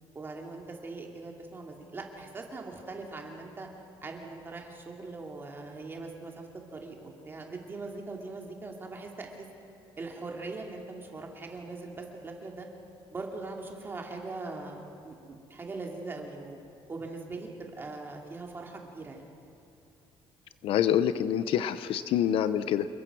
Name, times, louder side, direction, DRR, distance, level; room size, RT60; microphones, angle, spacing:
voice 1, 0.1-3.7 4.0-9.5 10.0-12.7 13.1-16.6 16.9-19.2, right 3 dB, 25° right, 1 dB, 3.0 m, -41 dB
voice 2, 20.6-22.9, left 10 dB, 70° left, 13 dB, 0.9 m, -26 dB
28.0 x 22.0 x 6.2 m, 2.7 s
cardioid pair, 160°, 10 cm